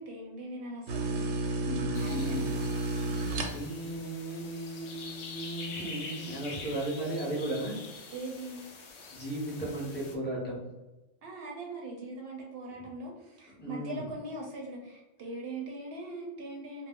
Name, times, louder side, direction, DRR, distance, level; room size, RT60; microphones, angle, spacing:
voice 1, 0.0-1.6 2.0-2.7 3.0-3.3 8.1-8.7 11.2-16.9, right 2 dB, 65° right, 0 dB, 0.7 m, -41 dB
sound 1, 0.9-3.9, right 2 dB, 90° right, 0.9 m, -31 dB
voice 2, 1.6-2.6 3.2-7.8 9.1-10.6 13.6-14.1, right 1 dB, 10° left, -5 dB, 0.6 m, -36 dB
sound 2, 1.9-10.2, left 4 dB, 70° left, 0.3 m, -45 dB
2.2 x 2.0 x 3.5 m, 1.1 s
omnidirectional pair, 1.2 m